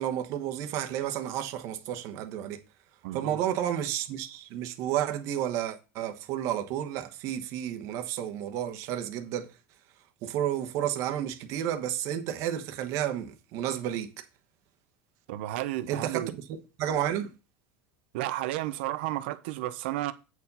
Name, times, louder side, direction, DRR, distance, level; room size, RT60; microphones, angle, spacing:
voice 1, 0.0-2.6 3.1-14.3 15.9-16.3 16.8-17.3, right 11 dB, 55° right, 1.2 m, -31 dB
voice 2, 3.0-3.4 15.3-16.3 18.1-20.1, right 15 dB, 75° right, 0.8 m, -32 dB
8.3 x 4.7 x 5.5 m
supercardioid pair, 135°, 6 cm